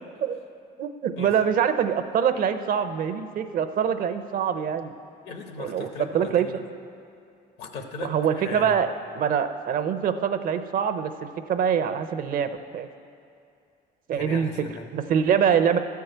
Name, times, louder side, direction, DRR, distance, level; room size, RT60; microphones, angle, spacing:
voice 1, 0.8-4.9 5.6-6.5 8.0-8.9 9.1-11.1 11.5-12.9 14.1-14.5 14.9-15.8, right 8 dB, 55° right, 10 dB, 0.6 m, -24 dB
voice 2, 5.2-6.6 7.6-8.8 14.1-14.9, left 4 dB, 75° left, 5 dB, 1.0 m, -38 dB
13.0 x 4.7 x 7.8 m, 2.5 s
cardioid pair, 110°, 17 cm